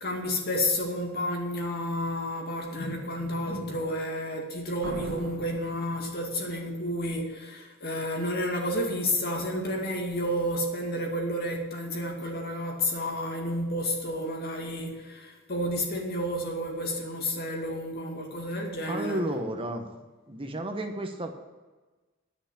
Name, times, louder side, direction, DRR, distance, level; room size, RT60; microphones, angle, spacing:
voice 1, 0.0-19.2, equal, 50° left, 1 dB, 2.2 m, -31 dB
Slam, 4.8-6.7, right 2 dB, 75° right, 1.4 m, -40 dB
voice 2, 18.8-19.9 20.3-21.3, right 1 dB, 25° right, 4 dB, 1.0 m, -32 dB
11.0 x 5.8 x 8.6 m, 1.2 s
head